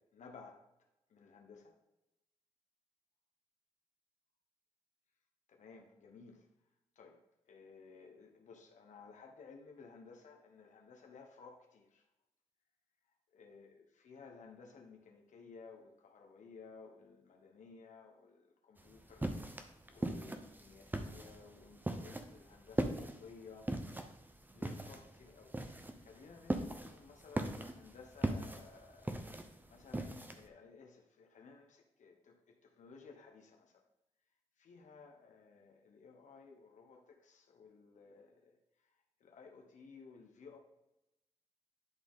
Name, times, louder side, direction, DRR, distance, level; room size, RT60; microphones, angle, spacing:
voice 1, 0.1-0.6 1.1-1.7 5.5-6.5 7.0-7.2 7.5-12.0 13.3-23.9 24.5-25.5 26.0-33.8 34.6-38.6 39.2-40.6, left 5 dB, 75° left, 2 dB, 1.2 m, -57 dB
sound 1, 18.8-30.4, right 1 dB, 15° right, 0.8 m, -40 dB
11.0 x 3.8 x 3.7 m, 0.91 s
cardioid pair, 70°, 13 cm